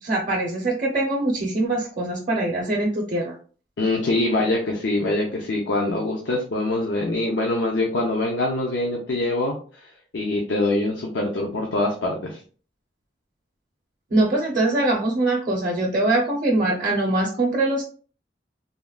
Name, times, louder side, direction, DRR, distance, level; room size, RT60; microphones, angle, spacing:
voice 1, 0.0-3.3 14.1-17.8, right 2 dB, 45° right, -1 dB, 0.6 m, -23 dB
voice 2, 3.8-9.8 10.1-12.4, left 2 dB, 85° left, 0 dB, 0.5 m, -24 dB
3.5 x 2.1 x 2.2 m, 0.40 s
head